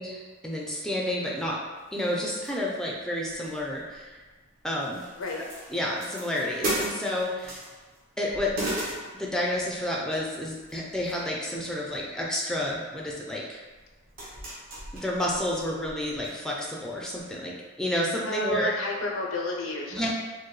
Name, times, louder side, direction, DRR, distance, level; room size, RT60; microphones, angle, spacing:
voice 1, 0.0-1.6 1.9-4.2 4.6-5.0 5.7-7.6 8.2-8.5 9.1-13.6 14.9-18.7 19.9-20.1, left 1 dB, 5° left, -3 dB, 0.4 m, -30 dB
sound 1, 1.4-1.5 1.9-2.9 3.2-4.5 4.8-8.0 8.3-9.7 10.4-11.3 11.6-12.1 13.1-13.2 13.7-16.3 16.6-16.7 17.1-17.3, right 1 dB, 45° right, 1.0 m, -37 dB
voice 2, 18.2-20.1, left 1 dB, 85° left, 0 dB, 0.6 m, -30 dB
4.5 x 2.2 x 3.1 m, 1.3 s
head